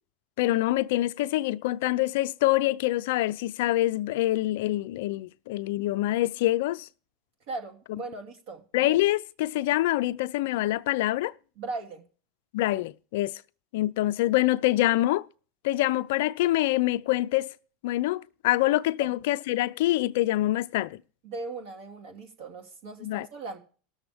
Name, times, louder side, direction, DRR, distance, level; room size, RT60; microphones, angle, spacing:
voice 1, 0.4-6.9 7.9-8.0 8.7-11.3 12.5-13.4 13.7-15.3 15.6-17.6 17.8-21.0 23.0-23.3, left 16 dB, 70° left, 0.4 m, -25 dB
voice 2, 7.5-8.6 11.6-12.0 19.0-19.1 21.2-23.6, right 3 dB, 65° right, 2.7 m, -38 dB
19.0 x 6.9 x 3.4 m
hypercardioid pair, 100°, 0 cm